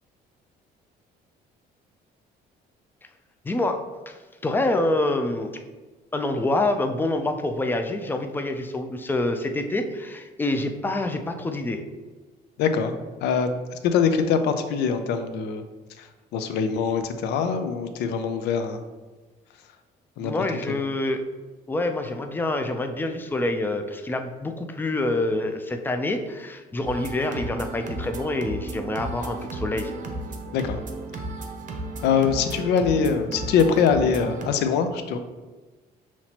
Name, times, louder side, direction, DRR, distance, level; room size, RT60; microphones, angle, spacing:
voice 1, 3.4-3.8 4.1-5.5 6.1-11.8 20.2-21.2 21.7-29.9, left 2 dB, 10° left, 6 dB, 0.4 m, -26 dB
voice 2, 12.6-12.9 13.2-15.6 16.0-18.8 20.2-20.3 20.7-20.8 30.5-30.8 32.0-35.2, left 6 dB, 80° left, 8 dB, 0.5 m, -23 dB
sound 1, 26.9-34.5, right 2 dB, 50° right, 0.7 m, -34 dB
5.8 x 2.9 x 2.8 m, 1.3 s
cardioid pair, 110°, 17 cm